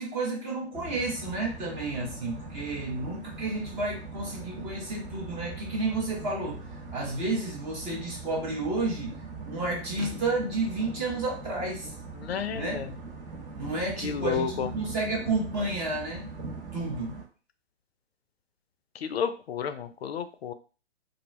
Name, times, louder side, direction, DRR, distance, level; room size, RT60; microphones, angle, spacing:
voice 1, 0.0-6.6 6.9-9.2 9.4-11.9 12.5-12.9 13.5-16.3 16.7-17.2, right 2 dB, 15° right, -2 dB, 0.6 m, -31 dB
sound 1, 0.7-17.3, right 4 dB, 40° right, 0.9 m, -41 dB
voice 2, 12.1-12.9 14.0-14.7 19.0-20.5, left 7 dB, 65° left, 10 dB, 0.5 m, -31 dB
2.5 x 2.2 x 3.0 m, 0.36 s
figure-of-eight pair, 125°, 33 cm